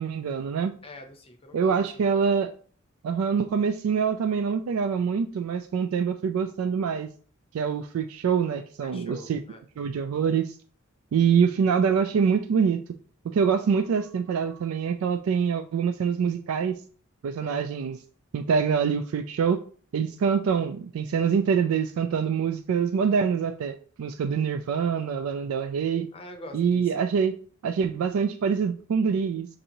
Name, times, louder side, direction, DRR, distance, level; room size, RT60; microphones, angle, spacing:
voice 1, 0.0-0.7 1.5-2.5 3.0-7.1 7.5-9.4 9.8-10.5 11.1-12.8 13.3-16.7 17.2-18.0 18.3-19.6 19.9-26.1 26.5-27.3 27.6-29.5, right 6 dB, 85° right, 9 dB, 0.3 m, -25 dB
voice 2, 0.8-2.3 8.8-9.6 17.4-17.7 26.1-26.9, left 2 dB, 25° left, 5 dB, 0.6 m, -45 dB
6.4 x 2.6 x 2.9 m, 0.44 s
head